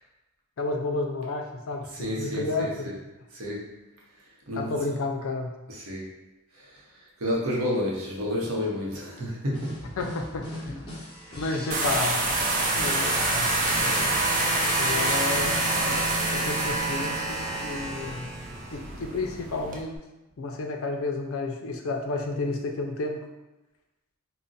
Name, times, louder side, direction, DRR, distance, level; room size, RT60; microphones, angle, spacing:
voice 1, 0.6-1.9 2.2-2.9 4.5-5.5 10.0-10.8 11.4-12.2 12.8-14.3 14.8-18.3 18.7-20.0 20.4-23.3, left 3 dB, 70° left, 3 dB, 0.4 m, -31 dB
voice 2, 1.9-2.9 3.3-3.8 4.5-4.7 5.7-6.1 6.6-9.8, left 1 dB, 80° right, -3 dB, 0.8 m, -31 dB
sound 1, 7.6-7.7 8.1-8.2 8.6-8.7 9.1-9.2 9.5-14.4, left 1 dB, 20° left, 0.7 m, -40 dB
sound 2, 11.1-18.9 20.0-20.1, right 1 dB, 10° right, 0.9 m, -31 dB
sound 3, 11.7-19.8, right 2 dB, 35° right, 0.4 m, -28 dB
2.4 x 2.0 x 3.9 m, 1.1 s
head